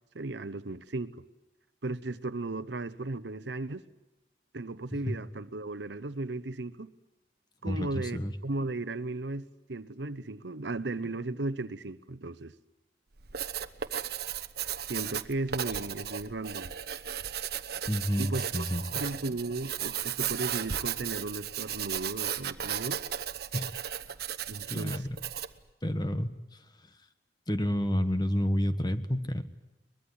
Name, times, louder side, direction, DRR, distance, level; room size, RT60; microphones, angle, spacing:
voice 1, 0.1-1.2 1.8-3.8 4.5-6.9 7.6-12.5 14.9-16.7 18.2-18.6 18.9-23.0 24.5-25.1, right 2 dB, 90° right, 1.0 m, -36 dB
voice 2, 7.6-8.3 17.9-19.0 23.5-23.7 24.7-25.1 25.8-26.3 27.5-29.4, equal, 25° left, 1.5 m, -29 dB
Writing, 13.2-25.6, right 9 dB, 65° right, 1.0 m, -35 dB
23.0 x 21.5 x 9.8 m
head